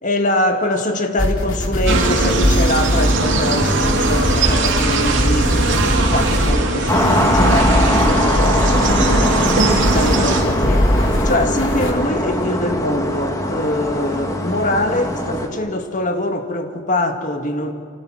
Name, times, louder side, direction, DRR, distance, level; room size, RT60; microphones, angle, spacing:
voice 1, 0.0-17.7, left 1 dB, 35° left, 6 dB, 1.8 m, -23 dB
sound 1, 1.2-11.9, equal, 65° left, 3.0 m, -20 dB
sound 2, 1.9-10.4, right 3 dB, 60° right, 3.4 m, -20 dB
sound 3, 6.9-15.5, left 1 dB, 15° left, 1.9 m, -21 dB
29.0 x 26.0 x 6.3 m, 2.2 s
head